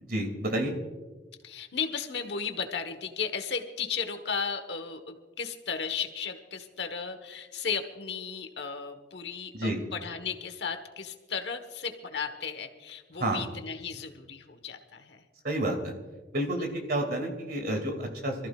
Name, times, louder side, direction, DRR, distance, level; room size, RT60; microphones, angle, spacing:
voice 1, 0.1-0.7 9.5-9.8 13.2-13.5 15.4-15.9 16.3-18.3, right 1 dB, 55° right, 3 dB, 2.5 m, -29 dB
voice 2, 1.4-15.2 16.6-16.7, left 6 dB, 65° left, 7 dB, 1.3 m, -35 dB
26.5 x 14.5 x 2.4 m, 1.3 s
head